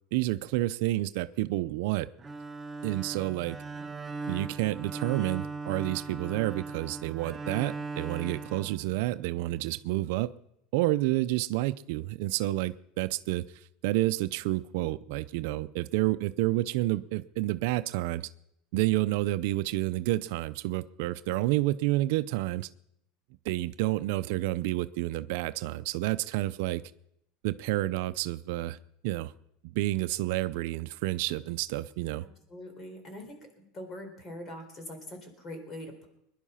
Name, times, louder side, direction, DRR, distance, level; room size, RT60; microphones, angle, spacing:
voice 1, 0.1-2.1 2.8-3.6 4.3-10.3 10.7-13.4 13.8-18.3 18.7-22.7 23.4-26.8 27.4-28.8 29.0-29.3 29.7-32.2, right 17 dB, 70° right, 13 dB, 0.6 m, -29 dB
Bowed string instrument, 2.2-9.4, right 3 dB, 20° right, 0.7 m, -39 dB
voice 2, 32.2-36.1, left 1 dB, 30° left, 6 dB, 4.0 m, -43 dB
21.0 x 11.0 x 5.7 m, 0.77 s
supercardioid pair, 135°, 0 cm